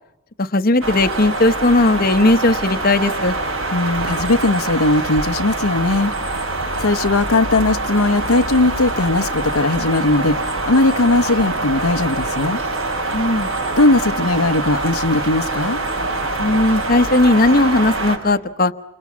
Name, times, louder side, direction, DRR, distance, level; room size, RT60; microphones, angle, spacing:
voice 1, 0.4-3.3 13.1-13.5 16.4-18.7, left 2 dB, 45° left, 1.1 m, -16 dB
sound 1, 0.8-18.2, right 2 dB, 70° right, 6.5 m, -24 dB
voice 2, 3.7-6.1 6.8-12.6 13.8-15.8, left 2 dB, 90° left, 1.0 m, -18 dB
30.0 x 25.5 x 7.3 m
head